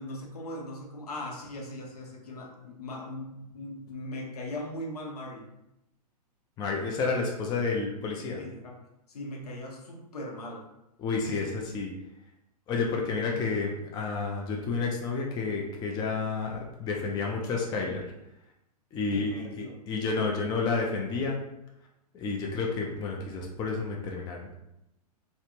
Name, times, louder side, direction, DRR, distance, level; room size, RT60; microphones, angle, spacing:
voice 1, 0.0-5.5 8.4-8.8 9.1-10.7 11.2-11.5 19.1-19.8, left 1 dB, 70° left, 0 dB, 0.8 m, -39 dB
voice 2, 6.6-8.4 11.0-11.9 12.7-18.0 18.9-19.3 19.9-21.4 22.1-24.6, left 4 dB, 20° left, 0 dB, 0.4 m, -30 dB
3.2 x 2.4 x 2.9 m, 0.86 s
hypercardioid pair, 110°, 20 cm